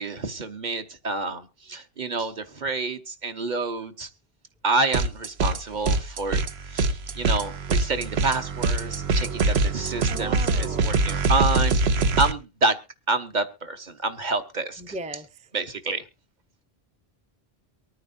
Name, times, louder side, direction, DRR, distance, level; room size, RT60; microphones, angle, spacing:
voice 1, 0.0-4.1 4.6-6.4 6.7-11.8 12.2-12.8 13.1-14.8 15.5-16.0, right 3 dB, 45° right, 1.1 m, -28 dB
sound 1, 4.9-5.6 5.8-12.3, right 3 dB, 80° right, 1.1 m, -24 dB
voice 2, 10.1-10.9 14.8-15.4, right 1 dB, 10° right, 0.5 m, -37 dB
24.0 x 9.4 x 2.6 m
omnidirectional pair, 1.1 m